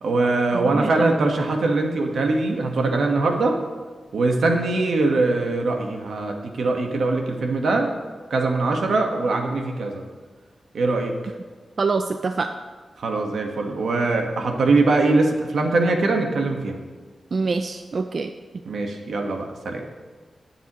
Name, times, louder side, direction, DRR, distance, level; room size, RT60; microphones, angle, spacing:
voice 1, 0.0-3.6 4.1-7.9 8.3-10.0 10.7-11.2 13.0-16.8 18.6-19.8, right 3 dB, 85° right, 3 dB, 1.3 m, -22 dB
voice 2, 0.5-0.9 11.8-12.5 17.3-18.3, right 4 dB, 50° right, 7 dB, 0.4 m, -25 dB
18.0 x 7.3 x 3.0 m, 1.4 s
wide cardioid pair, 125°, 0 cm